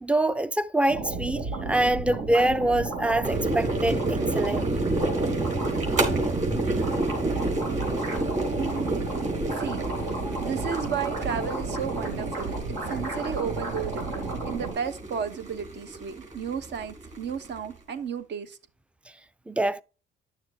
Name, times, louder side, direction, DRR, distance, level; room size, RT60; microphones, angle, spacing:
voice 1, 0.0-4.7 10.2-10.4 19.5-19.8, right 1 dB, 5° right, 0.4 m, -25 dB
sound 1, 0.9-14.7, right 3 dB, 85° right, 3.3 m, -32 dB
sound 2, 3.2-17.7, right 2 dB, 35° right, 3.4 m, -30 dB
voice 2, 8.5-9.0 9.5-9.8 10.4-12.5 12.8-14.0 14.4-18.6, right 7 dB, 65° right, 1.0 m, -33 dB
10.0 x 6.5 x 2.7 m
cardioid pair, 90°, 20 cm